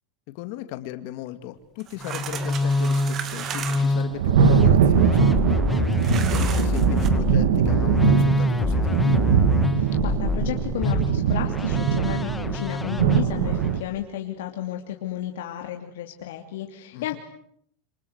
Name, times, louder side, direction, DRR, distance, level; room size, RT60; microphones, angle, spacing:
voice 1, 0.3-9.2 16.9-17.2, left 13 dB, 50° left, 9 dB, 2.1 m, -37 dB
sound 1, 1.8-4.0 6.0-7.1, right 8 dB, 25° right, 2.3 m, -34 dB
Musical instrument, 2.0-13.8, left 3 dB, 10° left, 1.3 m, -25 dB
Thunder, 3.7-13.8, right 9 dB, 90° right, 1.7 m, -22 dB
voice 2, 9.7-17.2, left 13 dB, 80° left, 3 dB, 2.7 m, -33 dB
27.5 x 25.5 x 8.1 m, 0.68 s
supercardioid pair, 165°, 0 cm